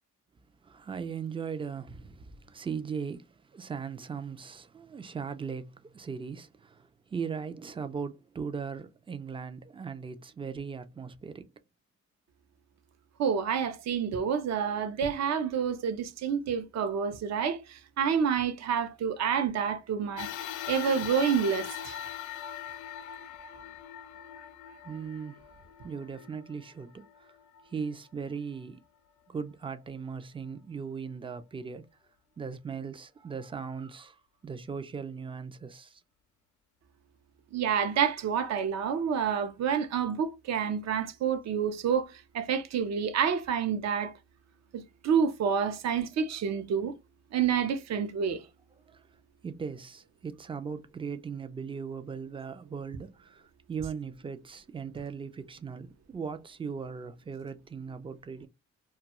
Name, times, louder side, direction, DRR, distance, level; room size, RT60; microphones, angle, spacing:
voice 1, 0.6-11.5 24.8-25.4 25.8-27.3 27.7-28.8 29.3-31.9 32.4-34.2 34.4-36.0 48.9-49.0 49.4-58.5, right 6 dB, 20° right, 0.3 m, -38 dB
voice 2, 13.2-20.3 20.7-22.0 37.5-44.1 44.7-46.9 47.3-48.4, right 7 dB, 60° right, 0.6 m, -28 dB
sound 1, 20.2-28.8 29.4-29.5 30.6-30.7, left 10 dB, 80° left, 0.5 m, -42 dB
2.3 x 2.3 x 2.9 m
cardioid pair, 90°, 30 cm